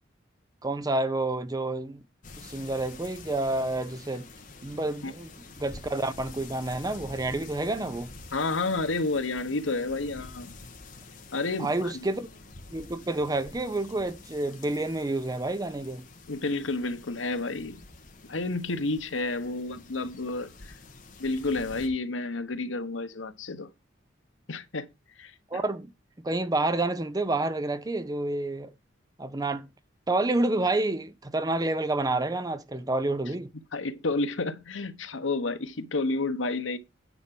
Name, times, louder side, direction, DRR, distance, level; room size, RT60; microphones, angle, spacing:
voice 1, 0.6-2.0 2.4-4.3 4.6-5.3 5.6-8.1 11.6-12.3 12.7-16.1 25.5-25.9 26.2-28.7 29.2-29.7 30.1-33.5, right 2 dB, 20° right, 0.6 m, -29 dB
sound 1, 2.2-21.9, left 3 dB, 45° left, 1.8 m, -48 dB
voice 2, 8.3-10.5 11.3-11.9 16.3-17.8 18.3-20.7 21.2-23.7 24.5-24.9 25.2-25.3 33.7-36.8, left 3 dB, 85° left, 1.1 m, -30 dB
9.5 x 4.7 x 5.9 m
head